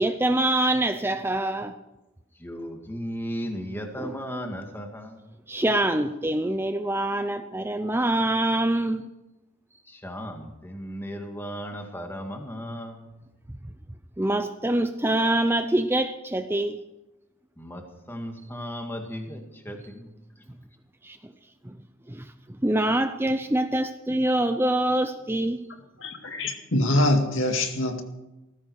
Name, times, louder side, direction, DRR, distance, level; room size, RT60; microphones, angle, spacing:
voice 1, 0.0-1.7 4.0-4.1 5.5-9.1 14.2-16.8 21.0-21.3 21.6-21.8 22.1-22.3 22.6-25.6, right 1 dB, 10° right, 8 dB, 0.6 m, -25 dB
voice 2, 2.4-5.2 9.9-13.2 17.6-20.1, equal, 10° left, 3 dB, 2.0 m, -36 dB
voice 3, 26.0-28.0, left 1 dB, 65° left, 5 dB, 2.1 m, -24 dB
18.0 x 15.0 x 4.8 m, 0.96 s
head